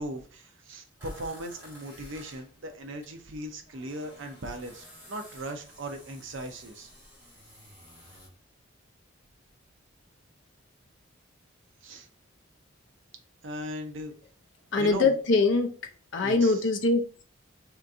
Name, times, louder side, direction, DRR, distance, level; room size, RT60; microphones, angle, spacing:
voice 1, 0.0-6.9 11.8-12.1 13.4-14.1 14.8-15.2 16.2-16.6, right 1 dB, 65° right, 0.6 m, -38 dB
sound 1, 1.0-3.1 3.4-8.3, equal, 10° right, 1.2 m, -52 dB
voice 2, 14.7-15.7 16.1-17.2, left 3 dB, 60° left, 0.5 m, -23 dB
2.8 x 2.5 x 3.4 m
head